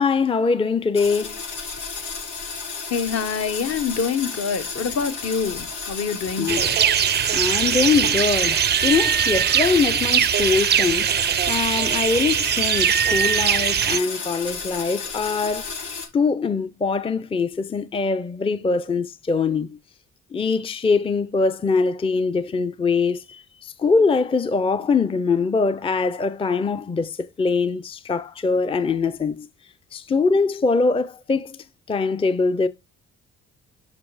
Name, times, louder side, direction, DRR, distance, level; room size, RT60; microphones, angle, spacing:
voice 1, 0.0-1.4 6.4-6.6 7.3-11.1 11.5-15.6 16.1-19.8 20.3-29.5 29.9-31.6 31.9-32.7, left 4 dB, 20° left, 0.5 m, -22 dB
sound 1, 0.9-16.1, left 5 dB, 90° left, 5.2 m, -33 dB
voice 2, 2.9-6.8, left 6 dB, 55° left, 1.2 m, -26 dB
sound 2, 6.5-14.0, right 9 dB, 35° right, 0.4 m, -21 dB
7.4 x 5.4 x 4.8 m
cardioid pair, 90°, 30 cm